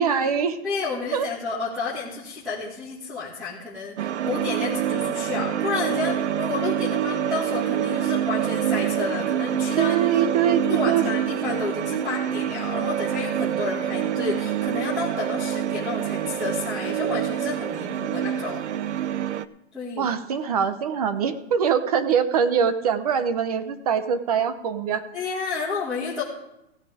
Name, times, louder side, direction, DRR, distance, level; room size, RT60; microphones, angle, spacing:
voice 1, 0.0-0.6 1.1-1.3 9.8-11.1 20.0-25.1, right 7 dB, 35° right, 12 dB, 0.8 m, -23 dB
voice 2, 0.6-10.3 10.7-18.6 19.7-20.1 25.1-26.2, left 4 dB, ahead, -7 dB, 1.7 m, -31 dB
sound 1, 4.0-19.5, right 10 dB, 85° right, 0.8 m, -26 dB
16.0 x 9.5 x 5.0 m, 0.88 s
hypercardioid pair, 175°, 34 cm